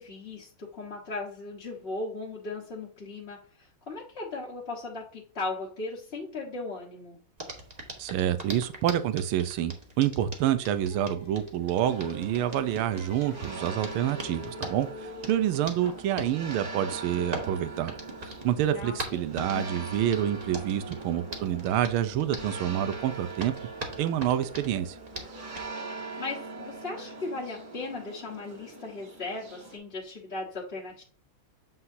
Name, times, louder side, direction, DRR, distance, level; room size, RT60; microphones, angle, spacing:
voice 1, 0.0-7.2 15.8-16.0 18.7-19.8 26.2-31.0, left 3 dB, 35° left, -4 dB, 1.2 m, -37 dB
Hands, 7.4-25.7, right 1 dB, 20° right, 1.2 m, -43 dB
voice 2, 8.0-17.9 18.4-23.5 24.0-25.0, right 11 dB, 90° right, 12 dB, 1.5 m, -28 dB
Singing, 10.4-15.6, left 1 dB, 50° left, 1.5 m, -46 dB
sound 1, 11.8-29.8, right 3 dB, 45° right, 2.4 m, -42 dB
7.7 x 5.6 x 2.7 m, 0.41 s
omnidirectional pair, 2.3 m